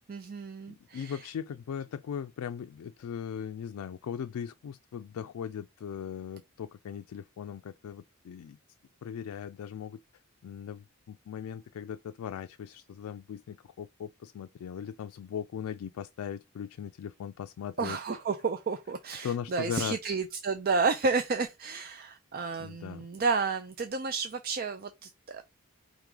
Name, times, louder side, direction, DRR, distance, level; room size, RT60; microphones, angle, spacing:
voice 1, 0.1-1.3 17.8-25.4, right 4 dB, 45° right, 0.4 m, -31 dB
voice 2, 0.7-8.6 9.0-10.0 10.4-18.0 19.2-20.0 22.6-23.1, left 8 dB, 90° left, 0.3 m, -39 dB
4.7 x 3.1 x 3.7 m
head